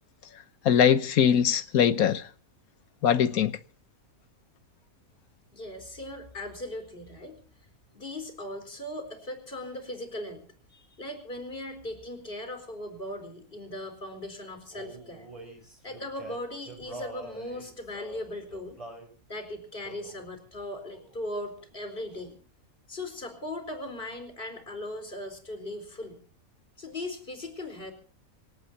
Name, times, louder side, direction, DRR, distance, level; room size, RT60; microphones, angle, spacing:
voice 1, 0.6-2.2 3.0-3.6, left 8 dB, 90° left, 1.5 m, -22 dB
voice 2, 5.5-7.4 7.9-15.3 15.8-18.8 19.3-22.3 22.9-26.2 26.8-27.9, left 1 dB, 40° left, 4.3 m, -38 dB
Male singing, 14.7-19.1 19.8-20.3 20.9-21.2 21.4-22.4, right 2 dB, 25° right, 5.2 m, -46 dB
26.5 x 17.0 x 2.8 m
omnidirectional pair, 1.5 m